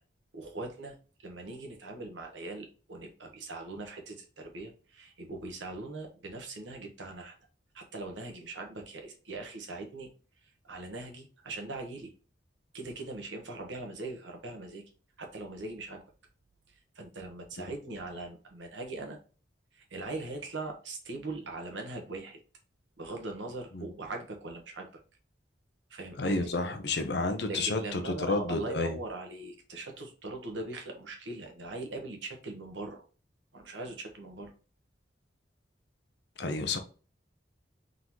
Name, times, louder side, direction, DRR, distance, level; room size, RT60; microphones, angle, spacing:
voice 1, 0.3-7.3 7.7-10.1 10.6-12.1 12.7-14.8 15.2-16.0 16.7-19.2 19.7-22.4 23.0-24.9 25.9-26.5 27.4-33.0 33.5-34.5, right 2 dB, 80° right, 1.3 m, -41 dB
voice 2, 26.2-29.0 36.4-36.8, left 3 dB, 65° left, 0.8 m, -30 dB
3.9 x 3.8 x 3.0 m
head